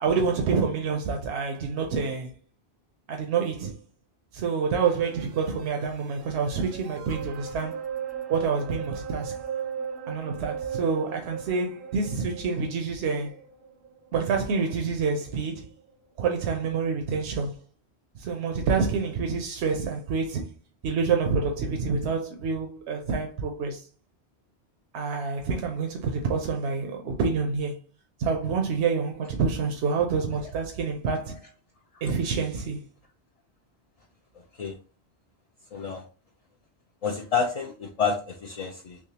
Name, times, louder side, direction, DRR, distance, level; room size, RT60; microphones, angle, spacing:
voice 1, 0.0-2.3 3.1-3.8 4.3-7.8 8.3-9.3 10.1-13.4 14.1-15.7 16.2-17.5 18.2-20.5 20.8-23.8 24.9-27.7 28.2-31.4 32.0-32.8, right 5 dB, 85° right, 0.9 m, -27 dB
sound 1, 5.0-15.4 15.8-15.9, right 7 dB, 60° right, 0.7 m, -38 dB
voice 2, 35.7-36.0 37.0-39.0, left 5 dB, 50° left, 0.4 m, -29 dB
3.6 x 3.0 x 2.8 m
omnidirectional pair, 1.1 m